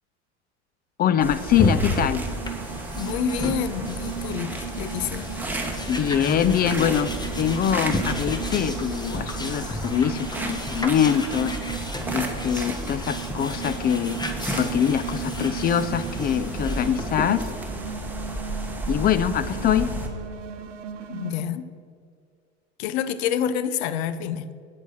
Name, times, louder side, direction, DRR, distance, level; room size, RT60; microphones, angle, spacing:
voice 1, 1.0-2.2 5.9-11.6 12.1-14.2 14.6-17.5 18.9-19.9, left 9 dB, 25° left, 14 dB, 0.4 m, -23 dB
sound 1, 1.2-20.1, right 1 dB, 5° right, 1.5 m, -33 dB
sound 2, 1.5-17.5, left 1 dB, 10° left, 1.2 m, -33 dB
sound 3, 1.9-21.4, right 9 dB, 80° right, 0.9 m, -37 dB
voice 2, 2.9-5.3 21.1-21.7 22.8-24.5, left 9 dB, 60° left, 14 dB, 0.7 m, -28 dB
8.7 x 8.1 x 6.3 m, 2.2 s
hypercardioid pair, 85°, 36 cm